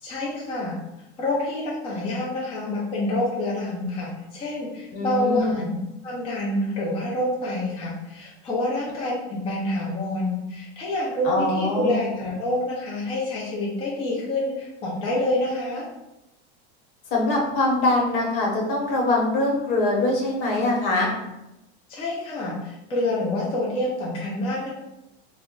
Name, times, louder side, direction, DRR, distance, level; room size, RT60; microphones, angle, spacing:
voice 1, 0.0-0.8 1.2-5.7 6.0-15.8 21.9-24.7, left 1 dB, 15° left, -5 dB, 0.5 m, -27 dB
voice 2, 4.9-5.6 11.2-12.0 17.1-21.1, left 2 dB, 60° left, -1 dB, 1.0 m, -23 dB
2.3 x 2.1 x 3.6 m, 0.93 s
supercardioid pair, 140°, 33 cm